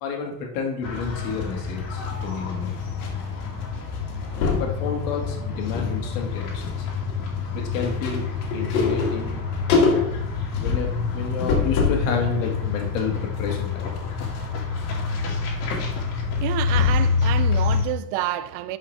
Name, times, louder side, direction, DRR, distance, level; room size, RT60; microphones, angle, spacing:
voice 1, 0.0-2.8 4.6-6.9 7.5-8.3 8.5-9.4 10.6-13.9, left 5 dB, 65° left, 2.2 m, -30 dB
sound 1, 0.8-17.8, left 5 dB, 50° left, 2.5 m, -27 dB
sound 2, 0.9-3.1 3.4-3.6 3.9-4.7 5.3-5.9 6.2-12.1 12.5-17.2 17.5-17.6, left 4 dB, 85° left, 2.3 m, -27 dB
voice 2, 16.4-18.8, right 13 dB, 35° right, 0.4 m, -28 dB
11.5 x 5.6 x 3.3 m
supercardioid pair, 150°, 43 cm